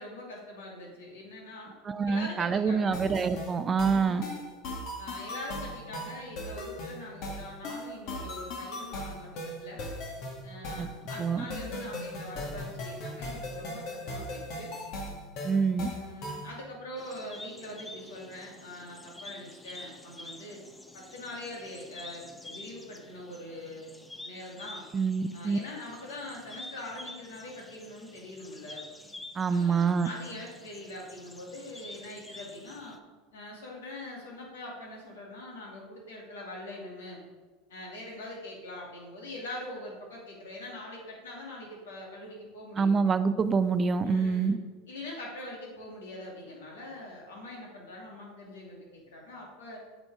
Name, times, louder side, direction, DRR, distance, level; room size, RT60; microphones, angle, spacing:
voice 1, 0.0-1.7 2.1-3.0 3.8-4.4 5.0-9.8 10.4-14.7 15.9-20.6 20.9-23.9 24.2-24.8 25.3-28.8 29.5-33.0 33.3-37.2 37.7-43.0 44.0-44.6 44.9-49.8, left 1 dB, 85° left, -2 dB, 2.4 m, -43 dB
voice 2, 1.9-4.2 10.8-10.9 11.2-11.4 15.4-15.9 24.9-25.6 29.4-30.1 42.8-44.6, right 5 dB, 30° right, 12 dB, 0.5 m, -26 dB
sound 1, 2.9-16.5, left 1 dB, 55° left, 1.8 m, -38 dB
sound 2, 17.0-33.0, left 1 dB, 10° left, 0.8 m, -48 dB
8.6 x 6.2 x 3.6 m, 1.3 s
hypercardioid pair, 90°, 0 cm